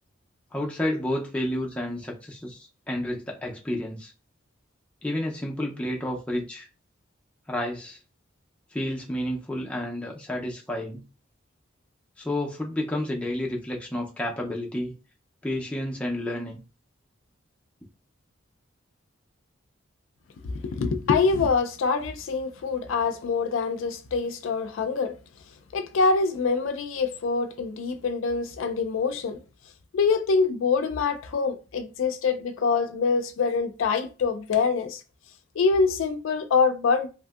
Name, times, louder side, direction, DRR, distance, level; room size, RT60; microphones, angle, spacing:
voice 1, 0.5-4.1 5.0-6.7 7.5-8.0 8.7-11.0 12.2-14.9 15.4-16.6, left 1 dB, 5° left, 0.4 m, -30 dB
voice 2, 20.4-25.2 25.7-29.4 29.9-35.0 35.6-37.1, left 4 dB, 75° left, 0.4 m, -25 dB
2.8 x 2.5 x 2.3 m
head